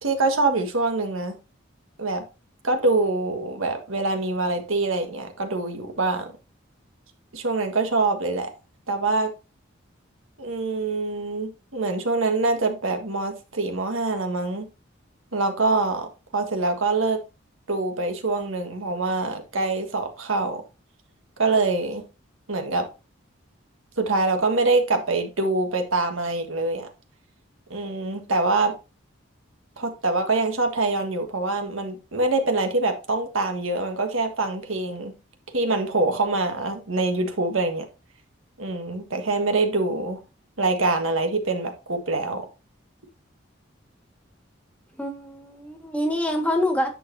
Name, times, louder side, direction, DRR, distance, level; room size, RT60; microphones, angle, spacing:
voice 1, 0.0-1.4 2.0-2.2 2.6-6.3 7.3-8.5 8.9-9.3 10.4-14.7 15.3-16.1 16.3-17.2 17.7-20.6 21.4-22.0 22.5-22.9 24.0-26.9 27.7-28.7 29.8-35.1 35.5-37.9 38.6-40.2 40.6-42.4, right 3 dB, 90° right, 1.6 m, -24 dB
voice 2, 45.0-46.9, left 1 dB, 5° left, 1.6 m, -25 dB
9.9 x 6.6 x 2.7 m
head